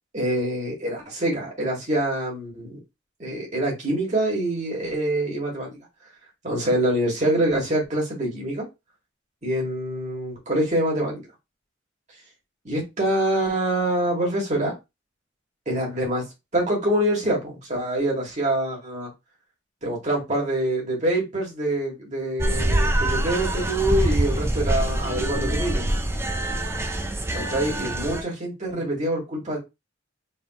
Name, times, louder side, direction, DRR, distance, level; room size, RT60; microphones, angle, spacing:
voice 1, 0.1-2.8 3.2-5.8 6.4-8.6 9.4-11.3 12.6-14.8 15.7-16.2 16.5-19.1 19.8-25.9 27.3-29.6, right 1 dB, 40° right, -3 dB, 2.2 m, -25 dB
sound 1, 22.4-28.2, right 1 dB, 15° right, 0.5 m, -25 dB
4.2 x 3.5 x 3.0 m, 0.23 s
head